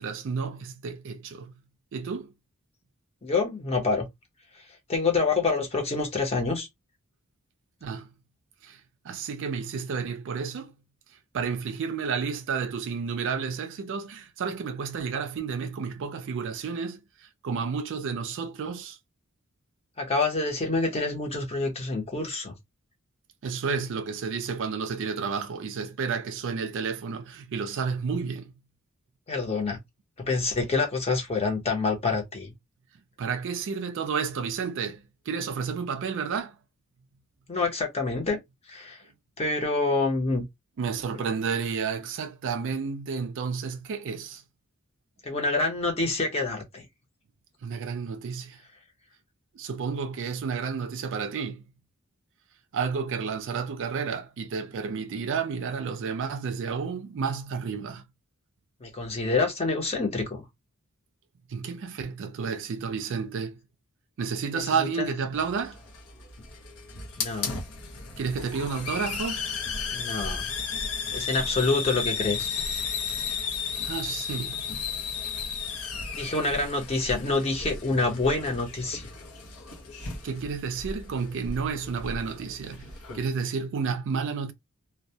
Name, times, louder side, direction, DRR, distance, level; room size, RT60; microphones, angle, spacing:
voice 1, 0.0-1.5 1.9-2.3 7.8-8.1 8.6-10.8 11.3-19.0 23.4-28.5 33.2-36.6 40.8-44.4 47.6-48.6 49.5-51.6 52.7-58.0 61.5-63.6 64.2-65.8 68.2-69.5 73.8-74.7 80.2-82.9 83.1-84.5, right 5 dB, 60° right, 0.4 m, -31 dB
voice 2, 3.2-4.1 4.9-6.7 20.0-22.5 29.3-29.8 30.3-32.5 37.5-38.4 38.7-39.0 39.4-40.4 45.2-46.8 58.8-60.4 64.5-64.6 67.2-67.6 69.9-70.5 71.1-72.6 76.1-79.1, left 3 dB, 30° left, 0.7 m, -27 dB
Hiss, 65.4-83.3, left 5 dB, 75° left, 0.7 m, -34 dB
2.2 x 2.1 x 2.7 m
head